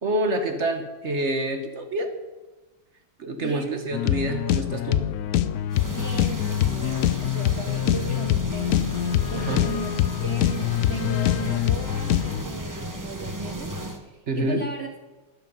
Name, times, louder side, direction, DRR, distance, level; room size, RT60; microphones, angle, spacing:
voice 1, 0.0-2.1 3.2-5.1 9.3-9.7 14.3-14.6, right 1 dB, 40° right, 7 dB, 1.2 m, -27 dB
voice 2, 3.2-3.8 5.9-8.9 9.3-14.9, right 4 dB, 75° right, 5 dB, 0.5 m, -36 dB
sound 1, 3.9-12.4, left 12 dB, 90° left, 0.8 m, -24 dB
sound 2, 5.7-14.0, right 1 dB, 25° right, 0.4 m, -35 dB
13.0 x 10.5 x 5.5 m, 1.1 s
omnidirectional pair, 2.2 m